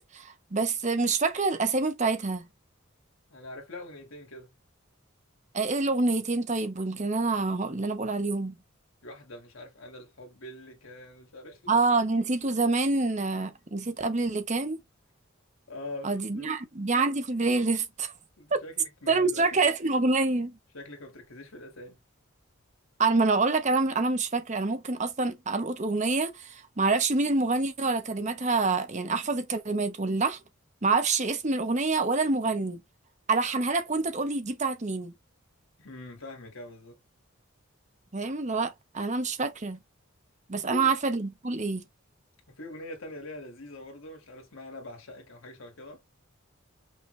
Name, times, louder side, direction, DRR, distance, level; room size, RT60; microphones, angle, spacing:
voice 1, 0.1-2.5 5.5-8.5 11.7-14.8 16.0-18.1 18.5-18.6 19.1-20.6 23.0-30.4 30.8-32.8 33.3-35.1 38.1-39.8 40.5-41.8, right 3 dB, 35° right, 0.8 m, -27 dB
voice 2, 3.3-4.5 9.0-11.6 15.7-16.5 18.4-19.6 20.7-22.0 35.8-37.0 40.5-41.0 42.6-46.0, left 1 dB, 80° left, 2.0 m, -43 dB
5.6 x 2.5 x 3.1 m
head